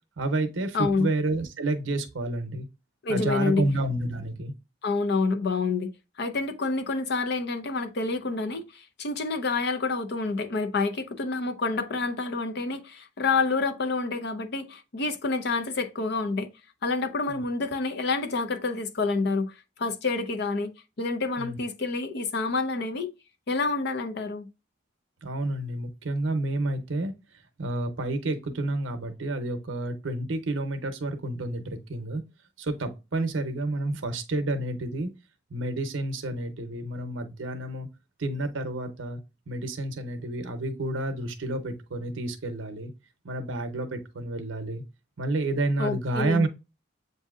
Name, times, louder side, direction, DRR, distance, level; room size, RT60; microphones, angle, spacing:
voice 1, 0.2-2.7 3.1-4.5 17.3-17.4 21.4-21.6 25.2-27.1 27.6-32.2 32.6-35.1 35.5-37.9 38.2-39.2 39.5-42.9 43.2-44.8 45.2-46.5, right 2 dB, 75° right, 0.7 m, -30 dB
voice 2, 0.7-1.1 3.0-3.7 4.8-5.9 6.2-16.5 16.8-20.7 21.0-23.1 23.5-24.5 45.8-46.5, left 3 dB, 55° left, 0.6 m, -28 dB
7.5 x 2.7 x 2.4 m
head